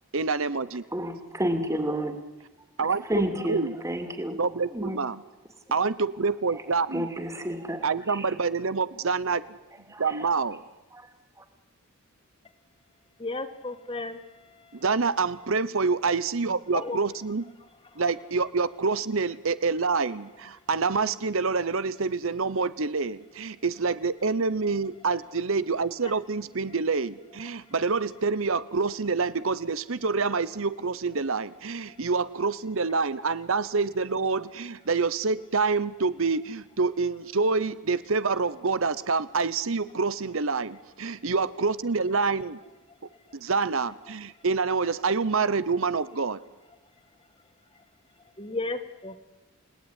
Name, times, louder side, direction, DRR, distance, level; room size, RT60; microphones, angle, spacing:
voice 1, 0.1-0.8 2.8-3.0 3.4-3.7 4.4-5.2 5.7-7.1 7.8-9.4 10.0-10.6 14.7-17.4 18.0-42.6 43.3-46.4, right 4 dB, 60° right, 15 dB, 0.9 m, -27 dB
voice 2, 0.9-2.2 3.0-4.4 4.7-5.0 6.5-6.6 6.9-8.3 9.9-10.3 10.9-11.1 11.4-11.5, right 1 dB, 15° right, 7 dB, 2.7 m, -31 dB
voice 3, 13.2-14.2 16.7-17.0 48.4-49.2, left 2 dB, 25° left, 10 dB, 1.6 m, -33 dB
29.5 x 18.5 x 9.9 m, 1.1 s
head